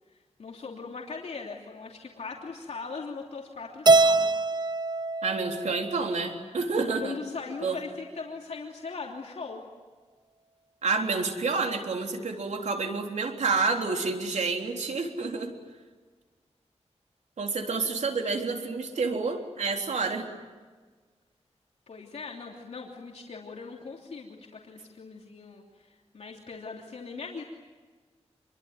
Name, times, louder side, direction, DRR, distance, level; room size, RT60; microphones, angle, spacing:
voice 1, 0.4-4.4 7.0-9.6 21.9-27.4, left 4 dB, 70° left, 0 dB, 3.0 m, -40 dB
Keyboard (musical), 3.9-6.2, right 3 dB, 40° right, 0.8 m, -23 dB
voice 2, 5.2-7.2 7.6-7.8 10.8-15.5 17.4-20.3, right 4 dB, 85° right, 2 dB, 3.7 m, -29 dB
27.5 x 23.0 x 9.4 m, 1.4 s
wide cardioid pair, 110°, 12 cm